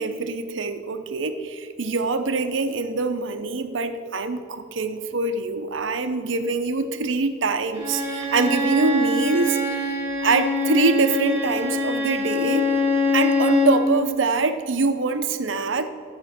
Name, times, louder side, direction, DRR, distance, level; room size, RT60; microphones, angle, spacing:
voice 1, 0.0-10.0 10.2-12.6 13.1-15.9, right 3 dB, 70° right, 8 dB, 0.8 m, -24 dB
Bowed string instrument, 7.7-13.8, left 2 dB, 20° right, 2.9 m, -23 dB
12.0 x 8.8 x 6.0 m, 2.1 s
head